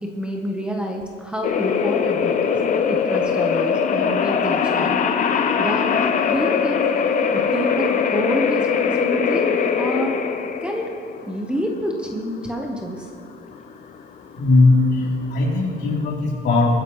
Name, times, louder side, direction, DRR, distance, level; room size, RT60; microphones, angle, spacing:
voice 1, 0.0-2.5 2.9-5.0 5.6-6.0 6.3-6.9 7.3-10.2 10.6-10.9 11.2-13.1, equal, 5° right, 1 dB, 1.0 m, -28 dB
sound 1, 1.4-16.0, left 6 dB, 40° left, 0.7 m, -21 dB
voice 2, 14.3-16.8, left 2 dB, 55° left, -3 dB, 3.3 m, -18 dB
21.5 x 10.0 x 3.1 m, 2.6 s
cardioid pair, 150°, 21 cm